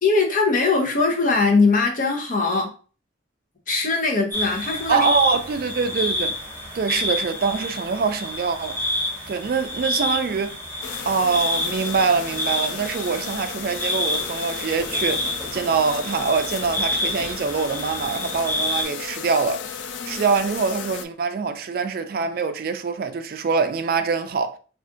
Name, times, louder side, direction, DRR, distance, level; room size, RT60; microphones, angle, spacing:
voice 1, 0.0-2.7 3.7-5.1 20.0-20.2, left 3 dB, 45° left, 0.7 m, -21 dB
sound 1, 4.3-18.8, left 1 dB, 15° left, 1.0 m, -29 dB
voice 2, 4.9-6.4 6.7-8.8 9.3-10.6 11.1-19.8 20.1-24.6, right 5 dB, 55° right, 0.3 m, -24 dB
sound 2, 10.8-21.1, left 7 dB, 85° left, 0.3 m, -34 dB
sound 3, 14.1-14.5 14.8-17.6 18.0-18.7, left 1 dB, 30° left, 1.4 m, -43 dB
2.4 x 2.4 x 3.7 m
head